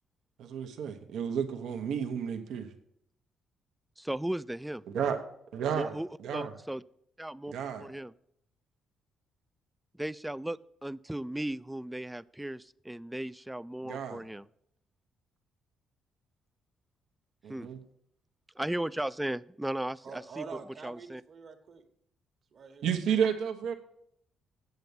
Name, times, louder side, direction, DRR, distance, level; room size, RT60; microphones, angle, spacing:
voice 1, 0.4-2.7 4.9-5.2 5.5-6.5 7.5-7.9 13.8-14.2 17.4-17.8 22.8-23.7, right 7 dB, 80° right, 5 dB, 1.1 m, -32 dB
voice 2, 4.0-4.8 5.7-6.8 7.2-7.5 7.8-8.1 10.0-14.5 17.5-17.7 18.6-20.5 20.8-21.2, right 1 dB, 5° right, 18 dB, 0.3 m, -36 dB
voice 3, 20.0-21.8 22.5-23.3, right 5 dB, 55° right, 6 dB, 1.5 m, -46 dB
8.1 x 7.9 x 7.0 m, 0.71 s
cardioid pair, 90°, 0 cm